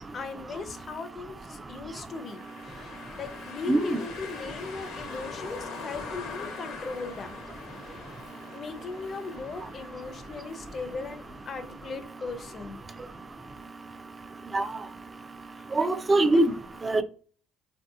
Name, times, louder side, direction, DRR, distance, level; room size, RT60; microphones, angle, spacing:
voice 1, 0.1-7.4 8.5-12.8 15.6-16.0 16.3-16.4, left 4 dB, 40° left, 0.6 m, -38 dB
sound 1, 2.1-11.9, left 5 dB, 70° left, 0.8 m, -43 dB
voice 2, 3.7-4.0 14.5-14.7 15.7-16.5 16.8-17.0, right 2 dB, 25° right, 0.4 m, -22 dB
3.4 x 2.7 x 2.3 m
supercardioid pair, 90°, 0 cm